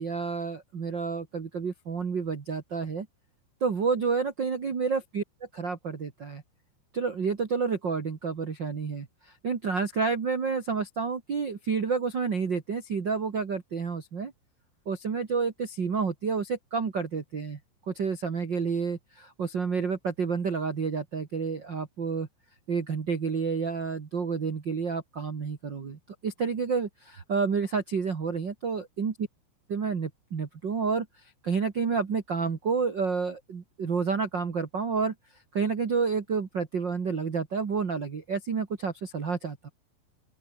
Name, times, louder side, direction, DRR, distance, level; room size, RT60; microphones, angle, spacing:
voice 1, 0.0-3.1 3.6-5.2 5.5-6.4 6.9-14.3 14.8-17.6 17.9-22.3 22.7-29.2 29.7-35.1 35.5-39.7, right 5 dB, 60° right, 1.1 m, -29 dB
open air
omnidirectional pair, 5.6 m